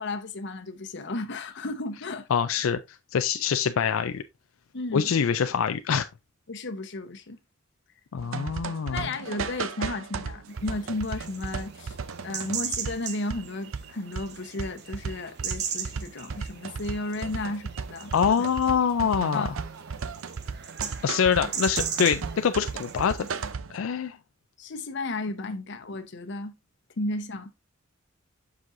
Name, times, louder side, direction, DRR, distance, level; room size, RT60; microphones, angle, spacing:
voice 1, 0.0-2.3 4.7-5.1 6.5-7.4 8.9-12.0 12.2-18.5 19.3-19.5 24.6-26.5 27.0-27.5, left 2 dB, 60° left, 1.0 m, -34 dB
voice 2, 2.3-4.2 4.9-6.0 8.1-9.1 18.1-19.5 21.0-23.3 23.7-24.2, left 7 dB, 85° left, 0.4 m, -25 dB
sound 1, 8.2-23.8, right 5 dB, 75° right, 0.6 m, -35 dB
sound 2, 10.5-23.5, right 8 dB, 55° right, 1.0 m, -38 dB
7.4 x 6.2 x 2.6 m
head